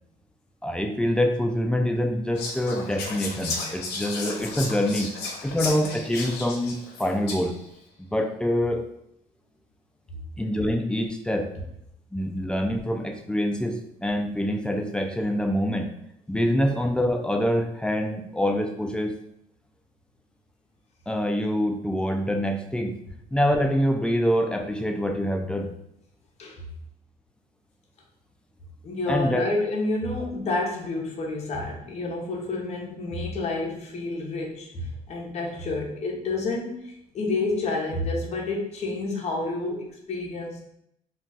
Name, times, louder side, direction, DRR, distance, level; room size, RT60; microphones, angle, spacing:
voice 1, 0.6-5.1 5.4-7.6 8.0-8.9 10.4-11.5 12.1-15.9 16.3-19.1 21.1-22.9 23.3-25.7 29.1-29.5, equal, 5° left, 4 dB, 0.3 m, -25 dB
Whispering, 2.3-7.7, left 4 dB, 75° left, 0.7 m, -34 dB
voice 2, 28.8-40.7, left 2 dB, 40° left, -1 dB, 0.7 m, -29 dB
2.3 x 2.3 x 3.8 m, 0.76 s
cardioid pair, 110°, 17 cm